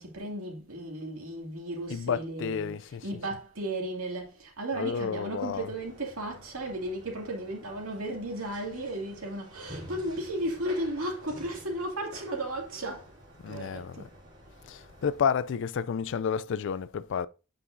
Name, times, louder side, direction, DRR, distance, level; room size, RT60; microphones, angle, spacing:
voice 1, 0.0-13.2 13.5-14.1, right 1 dB, 70° right, 2.4 m, -35 dB
voice 2, 1.9-3.1 4.7-5.7 13.4-14.1 14.6-17.3, left 7 dB, 55° left, 0.3 m, -31 dB
sound 1, 5.5-15.3, right 1 dB, 55° right, 2.7 m, -50 dB
8.4 x 5.7 x 2.6 m
head